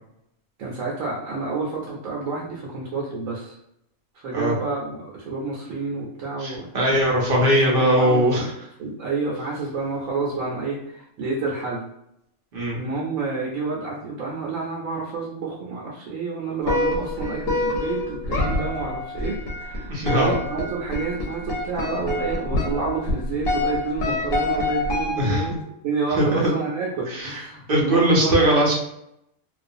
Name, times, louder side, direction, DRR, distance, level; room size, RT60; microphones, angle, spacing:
voice 1, 0.6-3.5 4.1-6.7 7.3-8.5 8.8-11.9 12.7-28.5, right 4 dB, 75° right, -3 dB, 1.0 m, -29 dB
voice 2, 6.4-8.5 12.5-12.8 19.9-20.3 25.1-25.5 26.2-26.4 27.1-27.4 27.7-28.7, right 1 dB, 50° right, -3 dB, 0.7 m, -20 dB
sound 1, 16.6-25.6, left 2 dB, 55° left, 0.8 m, -27 dB
2.4 x 2.2 x 2.6 m, 0.78 s
omnidirectional pair, 1.5 m